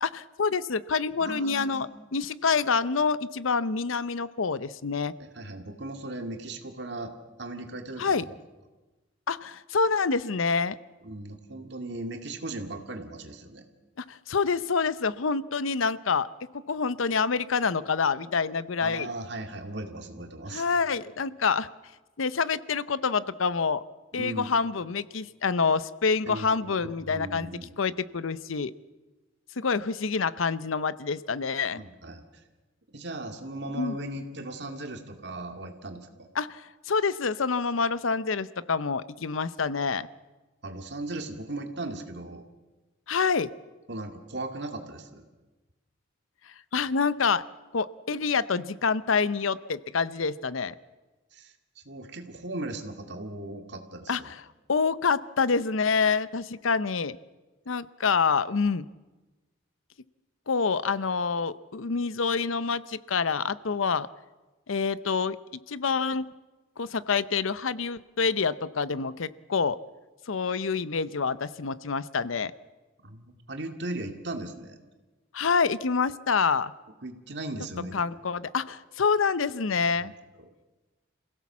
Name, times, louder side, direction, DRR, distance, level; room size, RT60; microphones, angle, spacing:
voice 1, 0.0-5.1 8.0-8.3 9.3-10.8 14.0-16.3 16.5-19.1 20.5-21.7 22.2-23.8 24.1-27.5 27.8-28.7 29.6-31.8 33.8-33.9 36.4-40.1 43.1-43.5 46.7-47.4 47.7-50.7 54.1-54.4 54.7-57.2 57.7-58.9 60.5-64.1 64.7-65.4 65.7-66.3 66.8-69.8 70.3-72.5 75.3-76.7 77.9-80.1, left 5 dB, 90° left, 17 dB, 0.7 m, -27 dB
voice 2, 1.2-2.0 5.2-8.3 11.0-13.6 18.8-20.6 24.1-24.5 26.3-27.7 31.8-32.2 32.9-36.3 40.6-42.4 43.9-45.2 51.3-51.5 51.9-54.3 73.0-74.8 77.0-78.0 79.8-80.1, right 2 dB, 55° right, 5 dB, 2.2 m, -37 dB
27.0 x 16.5 x 7.3 m, 1.2 s
head